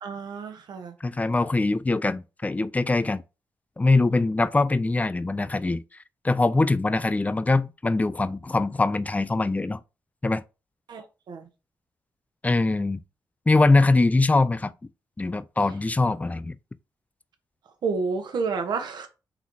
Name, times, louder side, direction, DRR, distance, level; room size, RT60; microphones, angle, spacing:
voice 1, 0.0-0.9 10.9-11.5 17.8-19.1, right 4 dB, 75° right, 1.0 m, -30 dB
voice 2, 1.0-3.2 3.8-5.8 6.2-9.8 10.2-10.4 12.4-13.0 13.5-14.7 15.2-16.6, left 3 dB, 20° left, 0.4 m, -22 dB
4.0 x 3.0 x 3.9 m
cardioid pair, 55°, 7 cm